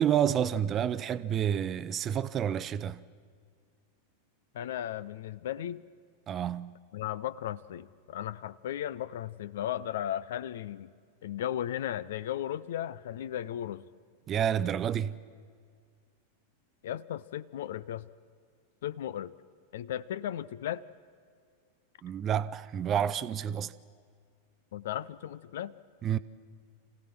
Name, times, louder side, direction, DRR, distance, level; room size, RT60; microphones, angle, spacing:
voice 1, 0.0-3.0 6.3-6.7 14.3-15.2 22.0-23.7 26.0-26.2, right 9 dB, 30° right, 0.6 m, -29 dB
voice 2, 4.5-5.9 6.9-10.9 11.2-13.9 16.8-18.1 18.8-19.3 19.7-20.9 24.7-25.7, left 11 dB, 55° left, 0.5 m, -36 dB
27.5 x 16.5 x 6.0 m
figure-of-eight pair, 90°, 0 cm